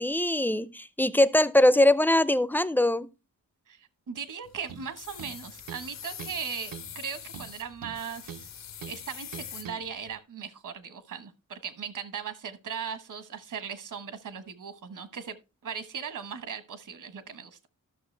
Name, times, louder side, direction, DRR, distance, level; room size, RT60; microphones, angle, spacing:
voice 1, 0.0-3.1, left 1 dB, 5° left, 0.4 m, -22 dB
voice 2, 3.7-8.5 8.9-15.3 15.6-17.6, right 7 dB, 65° right, 1.2 m, -38 dB
sound 1, 4.4-10.2, left 8 dB, 55° left, 0.6 m, -44 dB
sound 2, 4.7-4.9 5.2-5.9 6.2-6.4 6.7-7.0 7.3-8.5 8.8-9.0 9.3-9.8, right 8 dB, 85° right, 0.9 m, -43 dB
13.5 x 6.5 x 3.2 m
wide cardioid pair, 130°, 33 cm